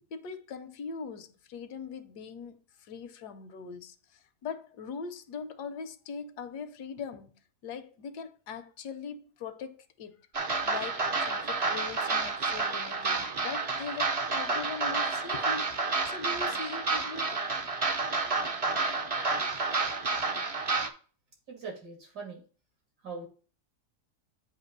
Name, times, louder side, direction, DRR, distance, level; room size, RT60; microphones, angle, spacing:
voice 1, 0.0-7.3 7.6-10.2 10.6-17.4, left 5 dB, 85° left, 1.3 m, -41 dB
sound 1, 10.3-20.9, right 4 dB, 55° right, 0.3 m, -30 dB
voice 2, 21.5-22.4 23.0-23.3, right 4 dB, 85° right, 2.9 m, -41 dB
8.2 x 2.8 x 5.3 m
omnidirectional pair, 1.7 m